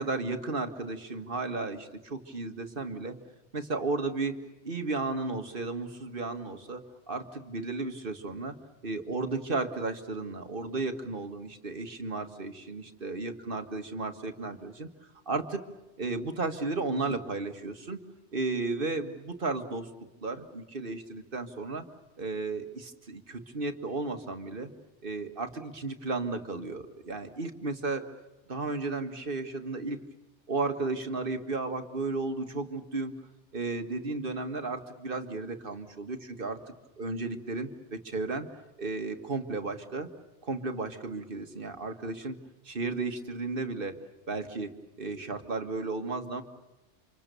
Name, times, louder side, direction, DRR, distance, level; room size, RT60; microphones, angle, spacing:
voice 1, 0.0-3.2 3.5-4.3 4.6-6.8 7.1-8.6 8.8-14.9 15.3-15.6 16.0-18.0 18.3-19.9 20.2-21.9 22.2-24.7 25.0-28.1 28.5-30.0 30.5-33.1 33.5-36.6 37.0-38.5 38.8-40.1 40.4-42.4 42.7-44.0 44.3-46.4, right 3 dB, 50° right, 7 dB, 1.9 m, -34 dB
29.5 x 26.5 x 6.9 m, 1.0 s
omnidirectional pair, 1.2 m